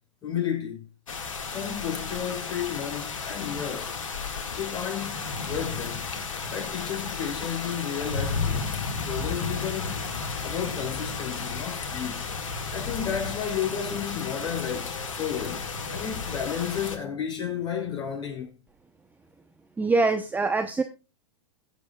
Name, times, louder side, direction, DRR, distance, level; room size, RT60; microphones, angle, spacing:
voice 1, 0.2-0.8 1.5-4.0 4.6-6.2 6.5-8.7 9.0-10.1 10.4-12.2 12.7-18.5, left 8 dB, 25° left, 5.8 m, -32 dB
sound 1, 1.1-17.0, left 4 dB, 85° left, 1.9 m, -33 dB
voice 2, 19.8-20.8, right 3 dB, 10° right, 0.8 m, -24 dB
21.5 x 7.4 x 2.3 m
hypercardioid pair, 110°, 16 cm